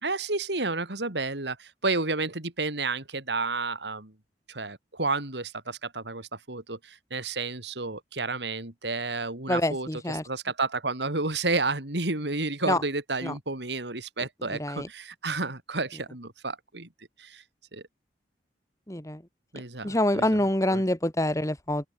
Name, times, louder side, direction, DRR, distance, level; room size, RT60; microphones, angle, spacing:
voice 1, 0.0-4.1 4.5-9.9 10.2-16.9 17.2-17.4 17.7-17.8 19.5-20.4 20.7-20.8, right 3 dB, 80° right, 3.4 m, -31 dB
voice 2, 9.5-10.2 12.7-12.8 13.2-13.3 14.5-14.9 18.9-19.2 19.8-21.9, left 1 dB, 20° left, 2.0 m, -26 dB
open air
head